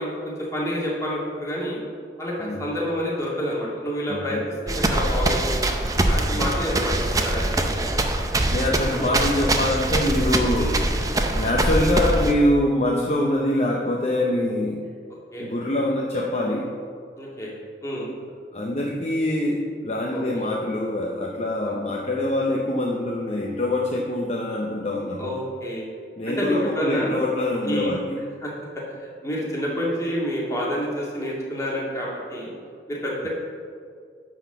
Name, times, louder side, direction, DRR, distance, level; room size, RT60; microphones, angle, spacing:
voice 1, 0.0-1.8 2.2-5.7 6.1-7.0 7.2-7.7 10.6-10.8 15.3-15.5 17.2-17.5 17.8-18.1 20.1-20.4 21.6-21.7 25.2-25.8 26.2-27.2 27.6-27.9 28.4-28.5 28.9-29.0 29.2-32.5 32.9-33.3, equal, 15° left, -5 dB, 2.0 m, -28 dB
voice 2, 4.1-4.5 6.3-6.5 8.4-10.7 11.3-14.9 15.4-16.7 18.5-25.3 26.2-28.2, left 1 dB, 35° left, -2 dB, 0.7 m, -24 dB
sound 1, 4.7-12.3, right 1 dB, 20° right, 0.5 m, -23 dB
10.5 x 4.1 x 6.7 m, 2.1 s
head